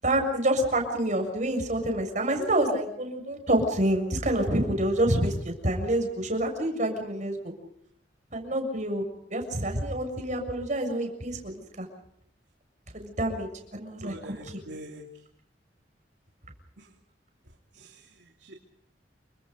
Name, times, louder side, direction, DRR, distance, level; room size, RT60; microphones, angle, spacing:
voice 1, 0.0-7.5 8.3-9.0 9.3-11.9 12.9-14.1 14.4-14.6, right 1 dB, 45° right, 5 dB, 6.8 m, -27 dB
voice 2, 14.0-15.1 16.8-16.9 17.7-18.5, right 1 dB, 75° right, 1 dB, 3.0 m, -44 dB
29.0 x 25.0 x 5.3 m, 0.72 s
head